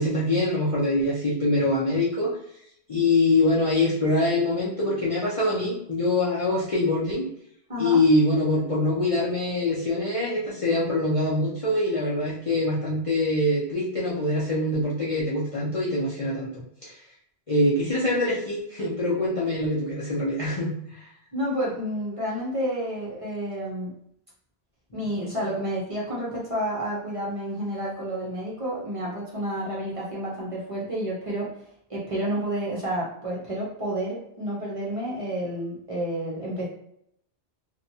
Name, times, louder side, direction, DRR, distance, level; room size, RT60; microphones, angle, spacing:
voice 1, 0.0-2.4 2.9-7.3 7.8-16.9 17.5-21.1 24.9-25.0, left 2 dB, 45° left, -8 dB, 0.4 m, -24 dB
voice 2, 21.3-23.9 24.9-31.5 31.9-36.7, right 1 dB, 35° right, -5 dB, 0.6 m, -30 dB
2.7 x 2.2 x 2.6 m, 0.72 s
omnidirectional pair, 1.1 m